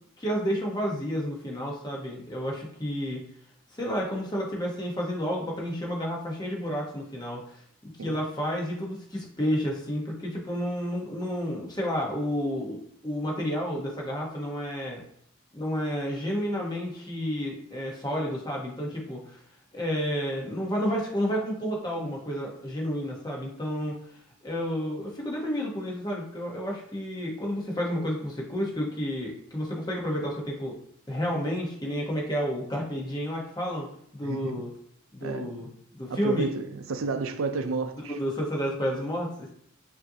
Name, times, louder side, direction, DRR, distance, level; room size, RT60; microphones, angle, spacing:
voice 1, 0.2-3.2 3.7-15.0 15.5-19.4 19.7-24.0 24.4-30.8 31.1-33.9 34.1-34.7 35.1-35.7 35.9-36.5 38.2-39.5, equal, 20° left, -2 dB, 0.9 m, -31 dB
voice 2, 34.2-34.7 35.2-35.7 36.1-38.1, right 3 dB, 80° right, 8 dB, 0.5 m, -31 dB
5.3 x 2.7 x 2.7 m, 0.67 s
head